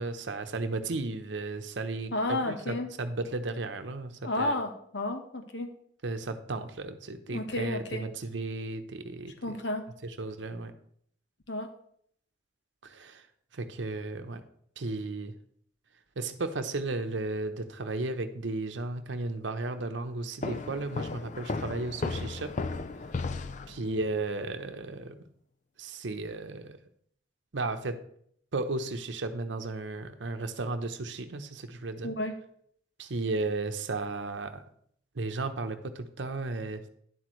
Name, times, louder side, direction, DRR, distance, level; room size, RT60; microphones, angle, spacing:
voice 1, 0.0-4.5 6.0-9.6 10.0-10.7 12.8-13.3 13.5-14.4 14.8-15.3 16.2-22.5 23.7-25.2 25.8-26.8 27.5-28.0 28.5-32.1 33.0-34.6 35.1-36.9, right 2 dB, 80° right, 8 dB, 0.8 m, -34 dB
voice 2, 2.1-2.9 4.2-5.7 7.3-8.1 9.4-9.9 11.5-11.7 32.0-32.4, left 2 dB, 75° left, 6 dB, 1.2 m, -32 dB
sound 1, 20.4-24.1, left 3 dB, 40° left, 0.4 m, -35 dB
10.0 x 7.7 x 3.1 m, 0.64 s
head